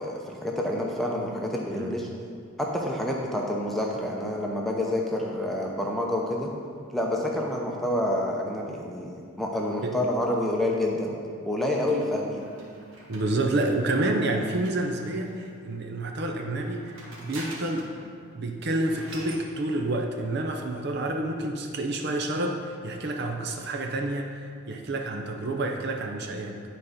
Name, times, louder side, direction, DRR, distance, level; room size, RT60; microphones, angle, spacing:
voice 1, 0.0-2.1 2.6-6.5 6.9-11.1 11.5-12.4, left 1 dB, ahead, -2 dB, 0.7 m, -28 dB
sound 1, 11.9-15.5 16.5-18.0 18.3-18.4 18.6-19.5, right 2 dB, 65° right, 1.5 m, -45 dB
voice 2, 13.1-16.9 17.2-17.9 18.3-24.4 24.7-26.7, right 2 dB, 50° right, 3 dB, 0.6 m, -29 dB
10.0 x 4.2 x 5.1 m, 2.3 s
head